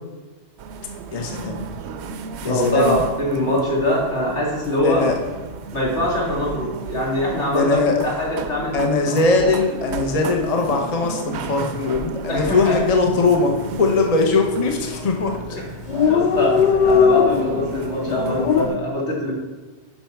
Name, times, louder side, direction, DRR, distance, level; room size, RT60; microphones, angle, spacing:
sound 1, 0.6-18.8, right 5 dB, 75° right, 0.9 m, -34 dB
voice 1, 1.1-1.8 2.4-3.0 4.8-5.2 7.5-8.1 8.7-15.4, left 3 dB, 35° left, 2 dB, 0.9 m, -20 dB
voice 2, 2.5-5.0 5.7-7.8 8.0-8.7 12.3-12.8 15.5-15.7 16.0-19.3, left 1 dB, 80° left, -5 dB, 2.9 m, -23 dB
Dog, 12.4-12.7 13.0-13.1 13.3-14.0 14.6-14.9 15.2-15.3 15.5-15.6 15.7-18.7, left 7 dB, 60° left, 0.5 m, -19 dB
10.0 x 5.9 x 4.6 m, 1.3 s
omnidirectional pair, 1.2 m